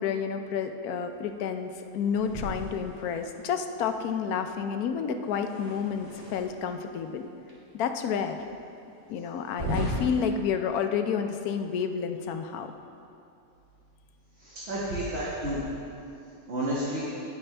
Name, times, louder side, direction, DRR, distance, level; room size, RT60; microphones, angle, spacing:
voice 1, 0.0-7.3 7.7-8.4 9.1-12.7, left 7 dB, 85° left, 7 dB, 1.2 m, -30 dB
sound 1, 2.1-3.5 5.2-6.7 7.5-7.6 8.2-8.3 9.4-10.3, equal, 25° right, 2.2 m, -36 dB
voice 2, 14.4-15.6 16.5-17.0, right 1 dB, 45° right, -8 dB, 1.9 m, -31 dB
18.0 x 7.0 x 3.3 m, 2.6 s
omnidirectional pair, 1.5 m